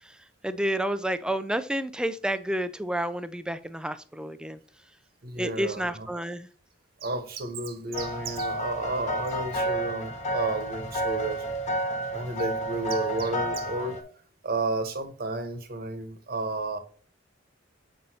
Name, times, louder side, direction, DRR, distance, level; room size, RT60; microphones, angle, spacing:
voice 1, 0.4-4.6 5.4-6.5, right 1 dB, 5° right, 0.4 m, -30 dB
voice 2, 5.2-6.1 7.0-11.4 12.1-14.0 14.4-16.8, right 2 dB, 55° right, 1.1 m, -32 dB
sound 1, 7.9-14.0, right 1 dB, 35° left, 1.4 m, -31 dB
7.9 x 5.3 x 2.8 m
head